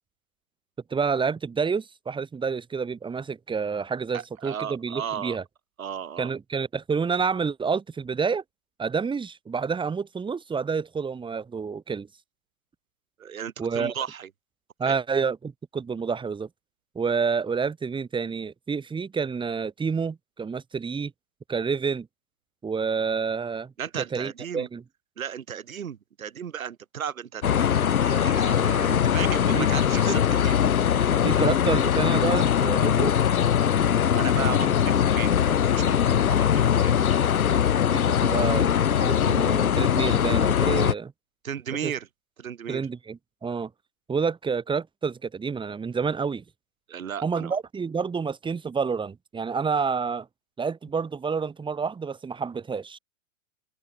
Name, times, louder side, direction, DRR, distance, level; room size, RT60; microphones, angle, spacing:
voice 1, 0.9-5.4 6.2-8.4 8.8-12.1 13.6-13.9 14.8-16.5 17.0-21.1 21.5-22.1 22.6-24.8 29.6-29.7 30.1-30.2 31.2-33.1 37.5-41.1 41.8-41.9 42.7-43.7 44.1-46.4 47.2-50.3 50.6-53.0, right 5 dB, 10° right, 2.4 m, -29 dB
voice 2, 4.1-5.4 5.8-6.3 13.2-14.3 14.8-15.0 23.8-24.7 25.2-30.6 34.2-36.9 41.4-42.1 42.4-42.8 46.9-47.6, right 8 dB, 75° right, 6.1 m, -35 dB
sound 1, 27.4-40.9, left 9 dB, 80° left, 1.1 m, -21 dB
open air
hypercardioid pair, 115°, 42 cm